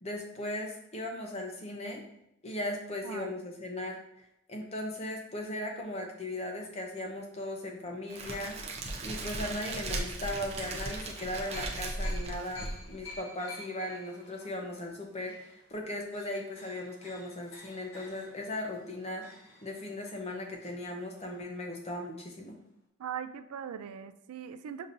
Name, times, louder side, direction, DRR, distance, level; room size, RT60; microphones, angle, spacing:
voice 1, 0.0-2.0 2.4-4.0 4.5-8.6 9.0-19.3 19.6-22.6, left 1 dB, 30° left, 2 dB, 0.6 m, -37 dB
sound 1, 5.6-8.1 8.6-8.8 11.0-21.8 22.1-22.2 22.4-22.6, left 2 dB, 60° left, 1.3 m, -53 dB
Crackle, 8.1-13.1, right 2 dB, 30° right, 0.5 m, -37 dB
voice 2, 23.0-24.9, right 8 dB, 85° right, 11 dB, 0.3 m, -40 dB
6.6 x 2.8 x 2.6 m, 0.82 s
head